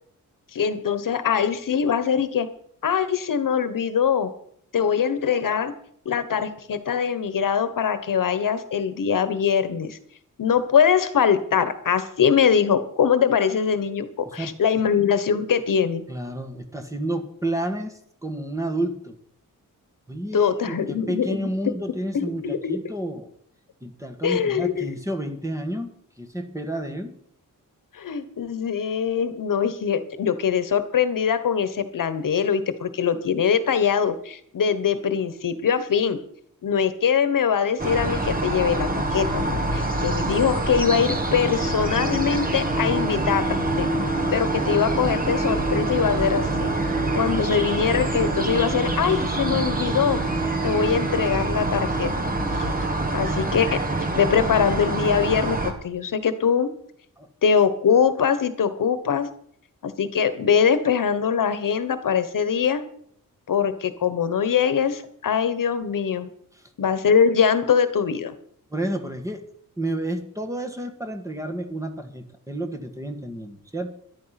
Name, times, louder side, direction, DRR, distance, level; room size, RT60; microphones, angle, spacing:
voice 1, 0.5-2.5 2.8-4.3 4.7-5.7 6.0-10.0 10.4-16.0 20.3-21.4 22.1-22.8 24.2-25.0 27.9-36.2 36.6-43.9 44.3-46.7 47.1-50.2 50.6-52.1 52.5-52.7 53.1-53.8 54.1-56.7 57.4-59.3 59.8-62.8 63.5-66.3 66.8-68.3, left 7 dB, 70° left, 12 dB, 1.3 m, -22 dB
voice 2, 16.1-19.2 20.1-23.3 23.8-27.2 47.4-47.5 57.2-57.3 66.6-66.7 68.7-69.4 69.8-74.0, right 1 dB, 10° right, 5 dB, 1.5 m, -30 dB
sound 1, 37.8-55.7, right 2 dB, 25° right, 1.7 m, -25 dB
13.5 x 11.5 x 5.9 m, 0.65 s
wide cardioid pair, 170°, 34 cm